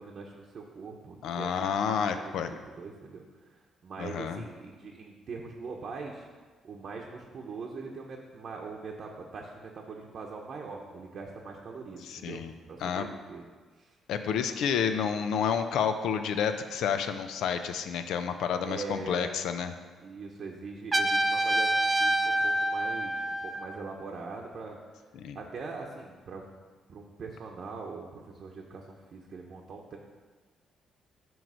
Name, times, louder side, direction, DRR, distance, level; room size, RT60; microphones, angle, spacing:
voice 1, 0.0-1.9 2.1-6.3 6.6-13.4 13.8-14.0 18.6-19.3 20.0-24.8 25.3-26.5 26.9-30.0, right 4 dB, 55° right, -1 dB, 0.8 m, -42 dB
voice 2, 1.2-2.5 4.0-4.4 12.1-12.5 12.8-13.0 14.1-19.7 25.2-25.4, left 7 dB, 80° left, 9 dB, 0.5 m, -30 dB
Trumpet, 20.9-23.8, right 1 dB, 25° right, 0.5 m, -27 dB
9.0 x 3.1 x 6.2 m, 1.5 s
cardioid pair, 90°, 0 cm